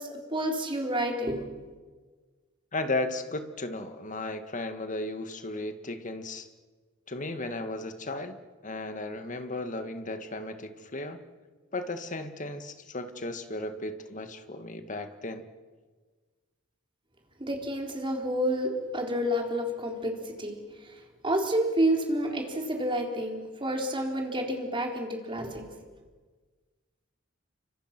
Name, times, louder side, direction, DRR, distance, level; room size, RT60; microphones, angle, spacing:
voice 1, 0.0-1.4 17.4-20.9 21.2-25.6, equal, 25° right, 2 dB, 4.0 m, -29 dB
voice 2, 2.7-6.5 7.1-8.4 8.6-11.2 11.7-15.5, left 2 dB, 40° left, 8 dB, 1.9 m, -35 dB
30.0 x 25.0 x 6.1 m, 1.4 s
head